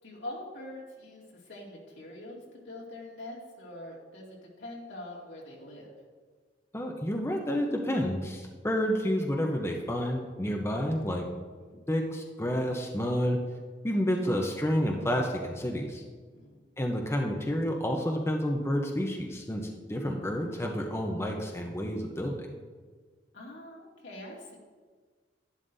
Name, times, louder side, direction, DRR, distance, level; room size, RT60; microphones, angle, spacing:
voice 1, 0.0-5.9 11.6-11.8 16.3-16.7 23.3-24.6, left 1 dB, 80° left, -4 dB, 2.4 m, -44 dB
voice 2, 6.7-11.3 11.9-13.4 13.8-16.0 16.8-19.6 19.9-22.5, equal, 15° left, 1 dB, 0.7 m, -29 dB
11.0 x 10.5 x 2.7 m, 1.5 s
head